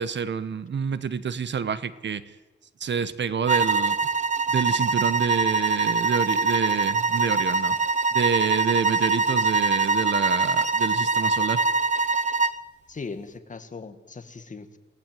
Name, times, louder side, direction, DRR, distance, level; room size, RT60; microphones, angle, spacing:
voice 1, 0.0-2.2 2.8-3.9 4.5-7.7 8.1-11.6, right 6 dB, 65° right, 14 dB, 1.3 m, -28 dB
sound 1, 3.5-12.6, right 4 dB, 35° right, 0.8 m, -23 dB
voice 2, 12.9-14.8, left 4 dB, 40° left, 9 dB, 1.9 m, -38 dB
28.0 x 18.0 x 9.3 m, 1.2 s
wide cardioid pair, 145°, 20 cm